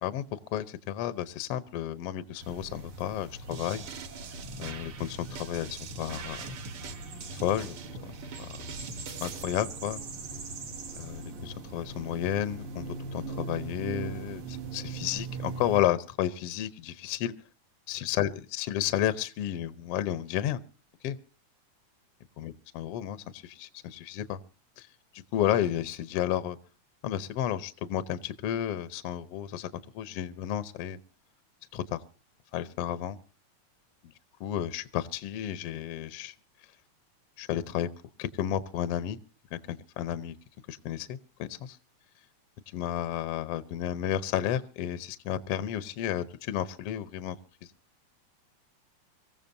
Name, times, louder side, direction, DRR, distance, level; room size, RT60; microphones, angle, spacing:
voice 1, 0.0-3.8 4.6-6.5 7.3-7.8 8.0-8.1 8.4-8.6 9.2-10.0 10.9-17.3 17.9-20.6 21.0-21.2 22.4-24.4 24.8-24.9 25.3-26.6 27.0-29.7 29.9-31.0 31.7-32.0 32.5-33.2 34.4-36.3 37.4-37.9 38.2-39.2 39.5-40.3 40.7-41.8 42.7-47.4, left 11 dB, 70° left, 13 dB, 1.5 m, -32 dB
sound 1, 2.4-15.8, right 3 dB, 85° right, 4.0 m, -41 dB
sound 2, 3.5-9.4, right 4 dB, 55° right, 1.9 m, -42 dB
25.0 x 15.0 x 2.7 m, 0.37 s
omnidirectional pair, 3.3 m